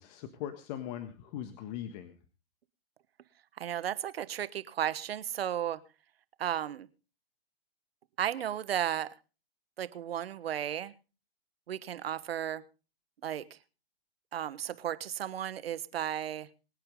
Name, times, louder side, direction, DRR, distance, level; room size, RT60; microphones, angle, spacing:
voice 1, 0.0-2.1, left 11 dB, 45° left, 9 dB, 1.6 m, -40 dB
voice 2, 3.6-5.8 6.4-6.9 8.2-9.1 9.8-10.9 11.7-12.6 13.2-13.6 14.3-16.5, right 10 dB, 75° right, 16 dB, 1.3 m, -34 dB
24.0 x 8.9 x 3.8 m, 0.33 s
hypercardioid pair, 125°, 30 cm